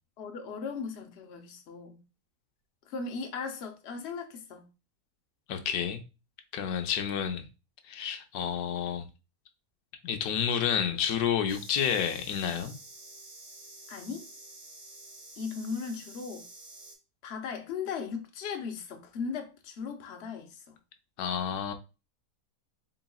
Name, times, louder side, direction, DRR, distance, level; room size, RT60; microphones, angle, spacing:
voice 1, 0.2-2.0 2.9-4.7 13.9-14.3 15.4-16.5 17.2-20.7, left 5 dB, 55° left, 0.9 m, -37 dB
voice 2, 5.5-6.0 6.5-7.4 7.9-9.1 10.0-12.7 21.2-21.7, left 8 dB, 85° left, 1.1 m, -30 dB
sound 1, 11.5-17.0, right 2 dB, 40° right, 1.3 m, -49 dB
4.0 x 3.8 x 2.3 m
omnidirectional pair, 1.6 m